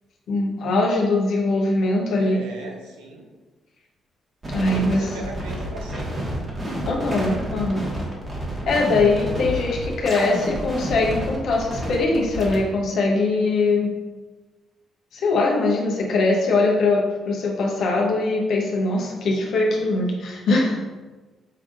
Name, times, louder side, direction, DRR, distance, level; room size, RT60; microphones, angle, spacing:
voice 1, 0.3-2.4 4.5-5.1 6.8-7.8 8.7-13.9 15.1-20.8, left 2 dB, 65° left, -1 dB, 0.8 m, -21 dB
voice 2, 2.2-3.3 4.7-6.3, right 2 dB, 80° right, 0 dB, 0.7 m, -38 dB
sound 1, 4.4-12.6, equal, 35° right, 1.3 m, -29 dB
5.5 x 3.6 x 2.4 m, 1.2 s
hypercardioid pair, 45°, 0 cm